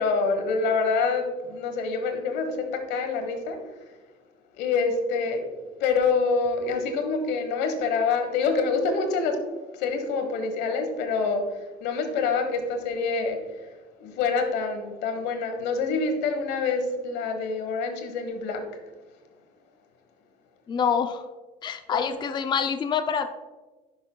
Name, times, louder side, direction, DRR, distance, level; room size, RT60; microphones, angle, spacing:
voice 1, 0.0-3.6 4.6-5.4 5.8-9.4 9.7-13.4 14.0-18.6 21.9-22.1, left 4 dB, 90° left, 6 dB, 1.1 m, -26 dB
voice 2, 20.7-21.2 21.6-23.3, left 7 dB, 25° left, 9 dB, 0.4 m, -26 dB
10.0 x 5.7 x 2.2 m, 1.2 s
cardioid pair, 110°, 17 cm